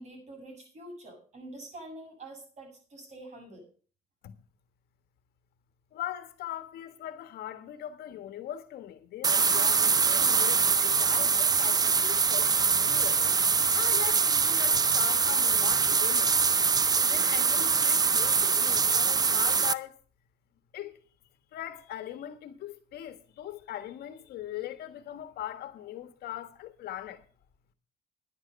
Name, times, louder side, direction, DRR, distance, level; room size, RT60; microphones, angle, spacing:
voice 1, 0.0-3.7, right 1 dB, 45° right, 7.5 m, -46 dB
voice 2, 5.9-13.2 13.7-16.4 17.0-20.0 20.7-21.0 21.5-27.2, left 12 dB, 70° left, 1.6 m, -40 dB
sound 1, 9.2-19.7, right 5 dB, 25° right, 0.5 m, -24 dB
10.5 x 10.5 x 5.4 m
cardioid pair, 110°, 17 cm